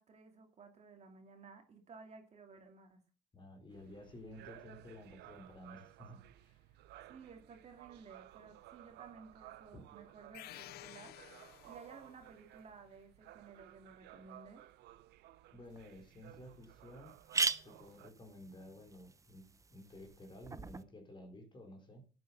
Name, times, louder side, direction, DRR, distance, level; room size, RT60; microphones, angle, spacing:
voice 1, 0.0-3.0 7.0-11.2 11.6-14.7, right 5 dB, 40° right, 4 dB, 2.8 m, -56 dB
voice 2, 3.3-6.6 9.7-9.8 15.5-17.2 17.6-19.4 19.7-22.0, left 1 dB, 30° left, 5 dB, 4.0 m, -53 dB
sound 1, 3.7-18.1, right 14 dB, 85° right, 0.9 m, -57 dB
sound 2, 10.3-12.2, left 15 dB, 70° left, 0.6 m, -52 dB
sound 3, 15.8-15.9 16.3-16.4 16.6-16.7 17.1-20.8, right 4 dB, 20° right, 0.8 m, -39 dB
12.0 x 7.8 x 7.0 m, 0.38 s
cardioid pair, 110°, 17 cm